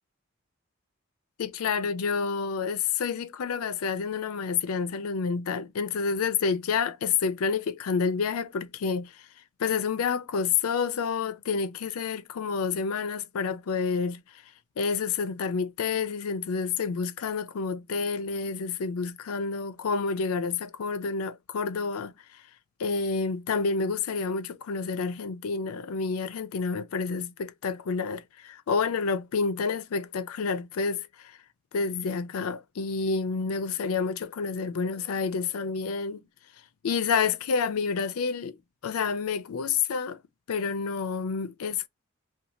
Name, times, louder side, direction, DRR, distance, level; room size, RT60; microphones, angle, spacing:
voice 1, 1.4-9.1 9.6-14.2 14.8-22.1 22.8-31.1 31.7-36.2 36.8-38.5 38.8-40.2 40.5-41.9, left 5 dB, 85° left, 0.4 m, -29 dB
2.7 x 2.2 x 2.9 m
head